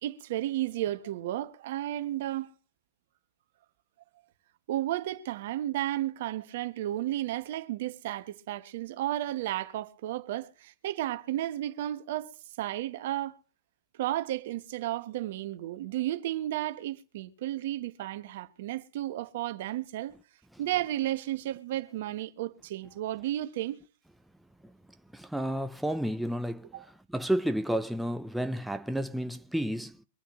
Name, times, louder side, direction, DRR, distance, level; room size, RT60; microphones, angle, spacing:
voice 1, 0.0-2.5 4.7-12.3 12.6-13.4 14.0-20.1 20.6-23.8 26.7-26.9, right 14 dB, 60° right, 1.1 m, -33 dB
voice 2, 25.1-26.8 27.1-30.0, right 1 dB, ahead, 0.5 m, -31 dB
24.5 x 9.1 x 3.1 m
hypercardioid pair, 115°, 0 cm